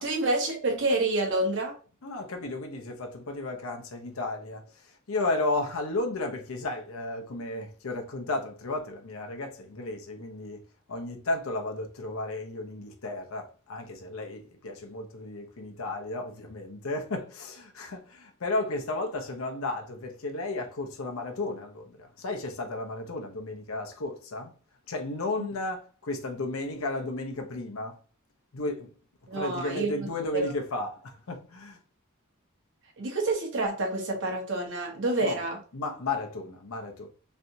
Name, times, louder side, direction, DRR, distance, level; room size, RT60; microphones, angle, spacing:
voice 1, 0.0-1.8 29.3-30.1 30.3-30.5 33.0-35.6, right 2 dB, 60° right, 1.0 m, -28 dB
voice 2, 2.0-10.6 10.9-24.5 24.9-28.0 28.5-29.0 29.3-31.8 35.2-35.4 35.7-37.1, left 2 dB, 75° left, 0.7 m, -33 dB
3.2 x 2.6 x 2.7 m
head